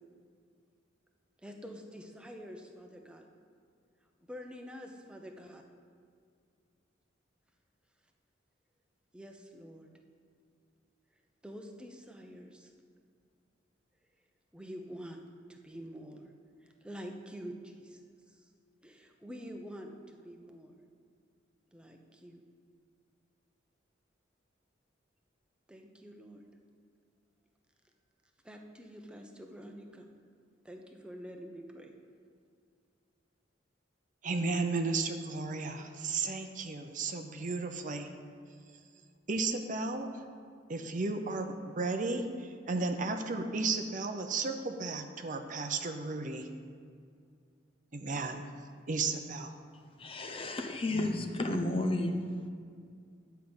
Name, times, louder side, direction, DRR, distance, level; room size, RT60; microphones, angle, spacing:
voice 1, 1.4-3.3 4.3-5.6 9.1-9.9 11.4-12.7 14.5-15.2 15.5-16.3 16.6-18.5 18.8-20.8 21.7-22.4 25.7-26.4 28.4-30.1 30.6-31.9, equal, 5° right, 3 dB, 0.9 m, -47 dB
voice 2, 34.2-38.1 39.3-40.2 40.7-46.5 47.9-48.4 48.9-49.5, right 3 dB, 45° right, 6 dB, 0.7 m, -34 dB
voice 3, 50.0-52.5, left 1 dB, 30° left, 5 dB, 0.7 m, -32 dB
10.5 x 5.7 x 7.9 m, 2.2 s
head